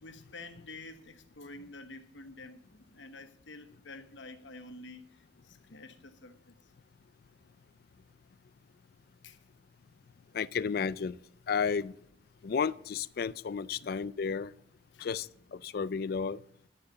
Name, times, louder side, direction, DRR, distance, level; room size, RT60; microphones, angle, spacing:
voice 1, 0.0-6.6 9.2-9.4 10.3-10.5 11.8-11.9 14.9-15.3, left 2 dB, 85° left, 1.1 m, -49 dB
voice 2, 10.3-11.2 11.5-11.9 12.4-14.5 15.0-16.4, left 6 dB, 55° left, 0.4 m, -32 dB
11.5 x 6.8 x 7.7 m
head